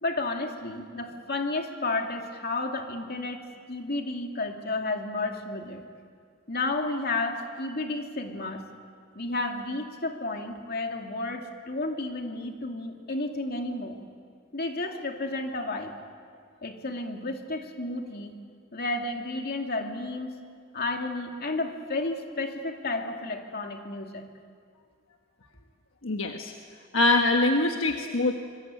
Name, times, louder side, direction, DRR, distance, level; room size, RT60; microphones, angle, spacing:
voice 1, 0.0-3.4 3.7-5.8 6.5-8.7 9.1-14.0 14.5-15.9 16.6-18.4 18.7-20.3 20.7-24.2, left 2 dB, 50° left, 3 dB, 2.7 m, -32 dB
voice 2, 26.0-26.5 26.9-28.3, left 2 dB, 70° left, 3 dB, 1.4 m, -23 dB
26.0 x 23.5 x 9.1 m, 2.1 s
head